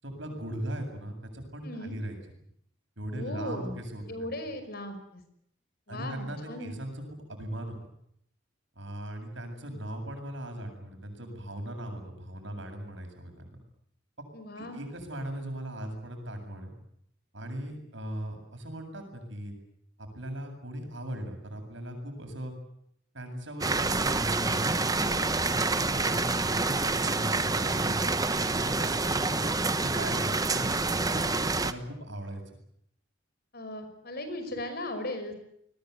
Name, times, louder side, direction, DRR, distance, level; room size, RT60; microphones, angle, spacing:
voice 1, 0.0-2.2 3.0-4.3 5.9-7.8 8.8-13.6 14.6-16.7 17.3-19.5 20.0-22.5 23.1-25.2 25.7-26.3 26.6-29.4 29.8-32.6, right 1 dB, 70° right, 4 dB, 7.9 m, -39 dB
voice 2, 1.6-1.9 3.1-3.8 4.1-5.2 5.9-6.7 14.3-14.8 33.5-35.3, left 1 dB, 50° left, 9 dB, 5.5 m, -37 dB
sound 1, 23.6-31.7, right 3 dB, 20° right, 1.2 m, -27 dB
29.0 x 21.0 x 8.2 m, 0.71 s
head